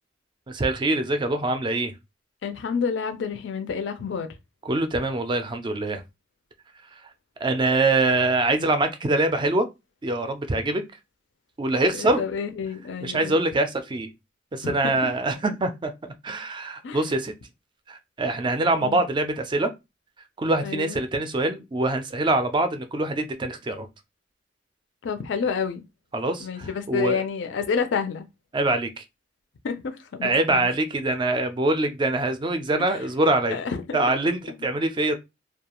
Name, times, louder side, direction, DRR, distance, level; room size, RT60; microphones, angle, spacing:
voice 1, 0.5-1.9 4.7-6.0 7.4-9.7 10.0-10.8 11.6-12.2 13.0-14.1 14.5-15.9 16.2-17.3 17.9-19.7 20.4-23.9 26.1-27.2 28.5-29.0 30.2-33.6 33.9-35.2, right 2 dB, 25° right, 0.3 m, -24 dB
voice 2, 2.4-4.3 11.9-13.4 14.6-15.4 16.8-17.2 18.8-19.0 20.6-21.0 25.0-25.8 26.4-28.3 29.6-30.7 33.5-34.0 34.6-34.7, left 5 dB, 65° left, 0.4 m, -29 dB
2.3 x 2.2 x 2.9 m
head